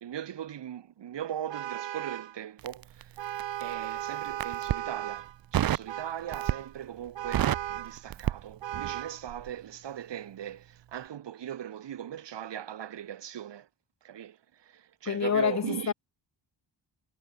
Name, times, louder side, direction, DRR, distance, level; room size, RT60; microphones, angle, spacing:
voice 1, 0.0-3.1 3.6-5.3 5.5-13.7 14.0-14.4 14.6-15.9, right 10 dB, 70° right, 1.7 m, -39 dB
Vehicle horn car horn honking, 1.5-2.4 3.2-5.4 5.9-6.7 7.2-8.0 8.6-9.2, right 12 dB, 85° right, 1.0 m, -36 dB
Crackle, 2.6-3.7 4.3-4.9 5.5-5.9 6.3-6.8 7.1-9.0 9.3-9.5, right 11 dB, 55° right, 0.6 m, -29 dB
voice 2, 15.1-15.9, left 7 dB, 40° left, 0.8 m, -27 dB
wide cardioid pair, 150°, 44 cm